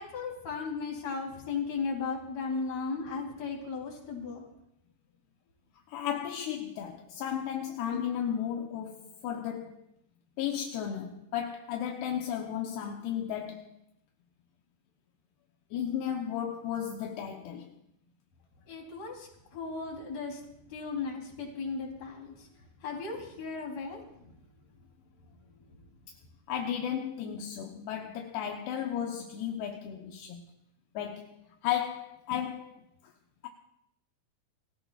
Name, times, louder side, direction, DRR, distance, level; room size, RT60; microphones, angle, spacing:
voice 1, 0.0-4.4 18.7-22.5 22.8-24.3 25.7-25.8, left 4 dB, 40° left, 4.2 m, -36 dB
voice 2, 5.9-9.8 10.4-13.8 15.7-17.8 26.5-30.5 30.9-31.4 31.6-32.8, left 9 dB, 80° left, 2.9 m, -34 dB
29.0 x 17.0 x 2.4 m
omnidirectional pair, 4.8 m